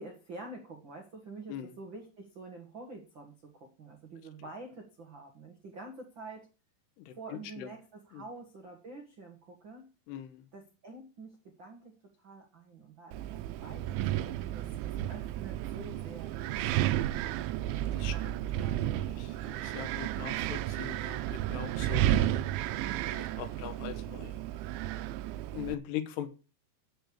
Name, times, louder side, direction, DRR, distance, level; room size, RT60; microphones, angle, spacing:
voice 1, 0.0-6.5 7.1-9.9 10.5-17.5 18.1-18.2 18.6-19.2 22.8-23.1, right 3 dB, 75° right, 2 dB, 1.1 m, -48 dB
voice 2, 7.0-7.7 8.1-8.2 10.1-10.4 17.9-18.7 19.0-22.0 22.3-22.5 23.1-24.4 25.5-26.3, left 10 dB, 75° left, 10 dB, 3.0 m, -41 dB
Wind, 13.1-25.7, right 13 dB, 90° right, 3.1 m, -32 dB
8.7 x 7.9 x 6.4 m, 0.33 s
omnidirectional pair, 5.2 m